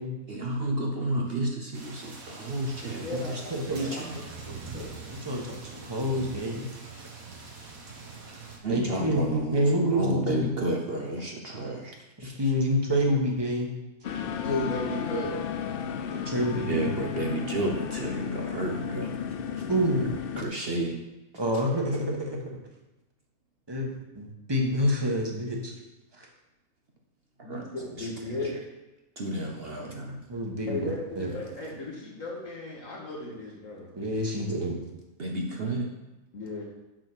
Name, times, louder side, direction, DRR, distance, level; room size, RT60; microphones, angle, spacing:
voice 1, 0.3-3.4 3.7-4.2 8.6-11.9 12.2-12.5 16.7-19.2 20.4-21.0 21.5-21.6 27.4-28.1 29.2-30.2 34.3-34.5 35.2-35.9, right 1 dB, 50° right, 1 dB, 0.9 m, -31 dB
sound 1, 1.7-8.6, right 4 dB, 65° right, 1.8 m, -43 dB
voice 2, 3.0-4.9 14.4-15.4 27.4-28.5 30.7-33.9 36.3-36.6, left 2 dB, 60° left, -5 dB, 1.7 m, -35 dB
voice 3, 5.1-6.7 8.7-10.5 12.4-13.7 16.1-16.9 19.7-20.1 21.3-22.4 23.7-25.7 26.2-26.3 30.3-31.3 33.9-34.7, equal, 15° right, 0 dB, 1.3 m, -27 dB
sound 2, 14.0-20.4, left 8 dB, 80° left, 0.5 m, -33 dB
6.4 x 6.3 x 6.1 m, 0.99 s
omnidirectional pair, 1.6 m